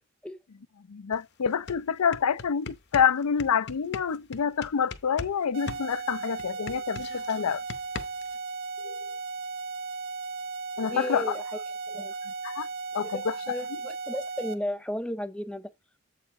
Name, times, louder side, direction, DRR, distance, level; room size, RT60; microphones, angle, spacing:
voice 1, 0.9-7.6 8.8-9.2 10.8-11.4 12.2-12.7 12.9-13.4, left 7 dB, 90° left, 0.5 m, -27 dB
sound 1, 1.1-1.2 1.5-5.4 5.7-8.4, left 4 dB, 50° left, 0.7 m, -39 dB
sound 2, 5.5-14.5, right 4 dB, 60° right, 1.1 m, -36 dB
voice 2, 10.9-11.4 11.9-12.1 13.1-15.7, equal, 5° left, 0.4 m, -34 dB
8.1 x 6.5 x 3.7 m
head